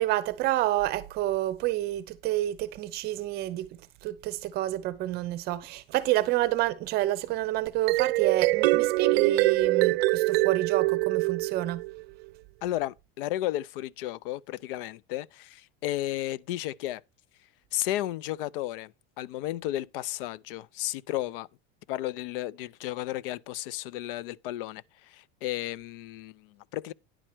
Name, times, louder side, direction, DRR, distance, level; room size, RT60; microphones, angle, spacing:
voice 1, 0.0-3.7 4.0-11.8, right 15 dB, 35° right, 0.7 m, -28 dB
sound 1, 7.7-12.0, right 20 dB, 80° right, 0.5 m, -24 dB
voice 2, 12.6-17.0 17.7-21.5 21.9-26.9, left 14 dB, 65° left, 0.5 m, -33 dB
10.0 x 4.4 x 5.9 m
supercardioid pair, 165°, 29 cm